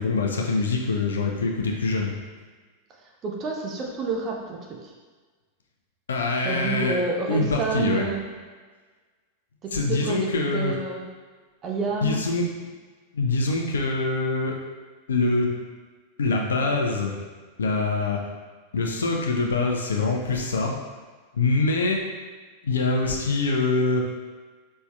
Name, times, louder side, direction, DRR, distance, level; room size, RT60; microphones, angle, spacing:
voice 1, 0.0-2.1 6.1-7.0 7.3-8.0 9.7-10.8 12.0-12.5 13.1-14.6 15.1-15.5 16.2-17.2 17.6-18.2 18.7-20.7 21.3-22.0 22.6-24.0, left 3 dB, 70° left, 1 dB, 0.5 m, -24 dB
voice 2, 3.2-4.6 6.4-8.2 9.6-10.2 10.5-11.1 11.6-12.2, right 4 dB, 30° right, 0 dB, 0.6 m, -28 dB
4.2 x 3.4 x 2.2 m, 1.4 s
figure-of-eight pair, 90°, 0 cm